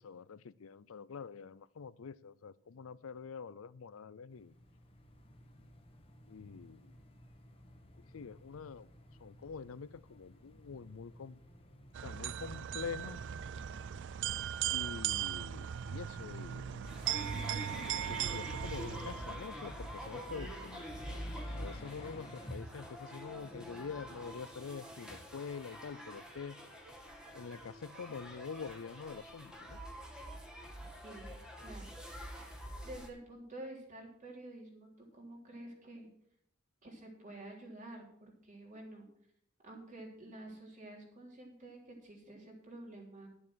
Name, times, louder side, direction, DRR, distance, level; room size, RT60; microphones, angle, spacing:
voice 1, 0.0-4.5 6.3-6.9 8.1-8.9 9.2-11.4 12.0-13.2 14.7-16.8 18.1-20.9 21.6-26.6 27.3-29.8, left 5 dB, 75° left, 18 dB, 0.5 m, -46 dB
sound 1, 4.3-22.6, equal, 30° left, 1.4 m, -52 dB
sound 2, 11.9-19.5, right 10 dB, 60° right, 0.4 m, -38 dB
sound 3, 16.8-33.1, equal, 5° right, 1.7 m, -47 dB
voice 2, 30.9-31.3 31.6-31.9 32.3-32.5 32.8-36.1 36.8-39.1 39.6-43.3, right 1 dB, 40° right, -1 dB, 3.6 m, -50 dB
12.0 x 7.2 x 6.3 m, 0.69 s
head